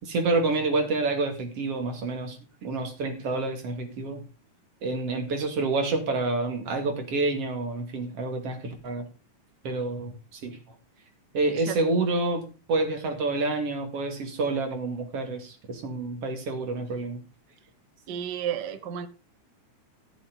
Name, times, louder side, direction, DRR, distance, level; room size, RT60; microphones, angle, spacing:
voice 1, 0.0-4.2 4.8-9.1 9.6-10.6 11.3-12.4 12.7-17.2 18.1-18.2, right 3 dB, 50° right, 5 dB, 3.2 m, -28 dB
voice 2, 18.1-19.1, right 9 dB, 70° right, 11 dB, 1.0 m, -31 dB
15.0 x 7.2 x 5.1 m, 0.31 s
omnidirectional pair, 3.6 m